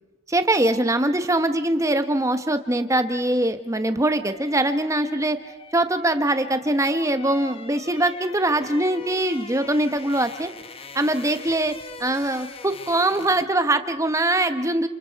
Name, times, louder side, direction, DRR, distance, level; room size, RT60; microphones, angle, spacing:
voice 1, 0.3-5.4 5.7-10.5 10.9-11.7 12.0-14.9, right 1 dB, 15° right, 9 dB, 1.0 m, -22 dB
sound 1, 3.6-13.6 13.9-14.1, left 4 dB, 25° left, 0.9 m, -43 dB
29.0 x 27.5 x 4.7 m, 1.2 s
head